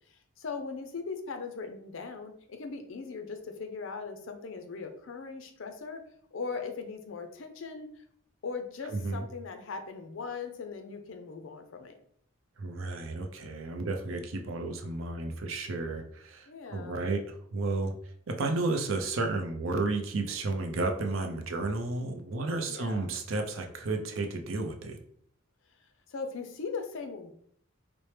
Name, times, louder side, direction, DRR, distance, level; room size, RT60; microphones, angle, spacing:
voice 1, 0.1-6.0 6.3-7.9 8.4-11.9 16.5-17.0 22.7-23.1 26.1-27.3, left 4 dB, 65° left, 6 dB, 0.5 m, -39 dB
voice 2, 8.9-9.2 12.6-17.9 18.3-25.0, right 3 dB, 70° right, 4 dB, 0.5 m, -32 dB
4.3 x 2.0 x 3.2 m, 0.65 s
head